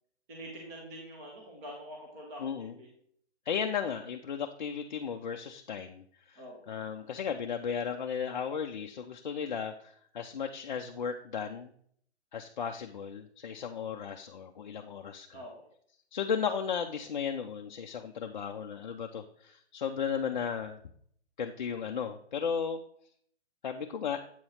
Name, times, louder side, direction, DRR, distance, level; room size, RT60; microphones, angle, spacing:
voice 1, 0.3-2.9 6.4-6.6 15.3-15.5, equal, 15° right, 0 dB, 0.7 m, -45 dB
voice 2, 2.4-2.7 3.5-6.4 6.7-11.7 12.3-15.3 16.1-20.8 21.4-22.8 23.6-24.2, left 7 dB, 45° left, 3 dB, 0.4 m, -35 dB
7.8 x 3.0 x 5.5 m, 0.63 s
hypercardioid pair, 170°, 34 cm